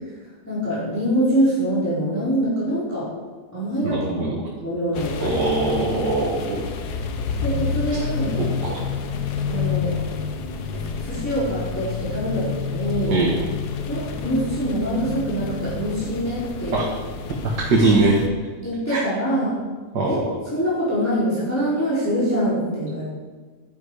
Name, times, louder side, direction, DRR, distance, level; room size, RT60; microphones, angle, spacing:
voice 1, 0.5-3.1 3.5-4.3 4.6-5.4 5.8-6.0 7.4-8.4 9.5-10.0 10.7-13.2 13.9-16.7 17.8-17.9 18.6-19.5 20.1-20.3 20.5-23.0, equal, 10° left, -10 dB, 4.6 m, -24 dB
voice 2, 3.8-4.4 5.2-6.7 7.9-8.0 8.4-8.8 13.0-13.3 16.7-16.8 17.7-18.2 18.9-19.0 19.9-20.2, right 2 dB, 85° right, -3 dB, 2.3 m, -21 dB
sound 1, 4.9-18.3, left 5 dB, 80° left, 1.5 m, -29 dB
11.5 x 11.0 x 5.0 m, 1.4 s
omnidirectional pair, 1.8 m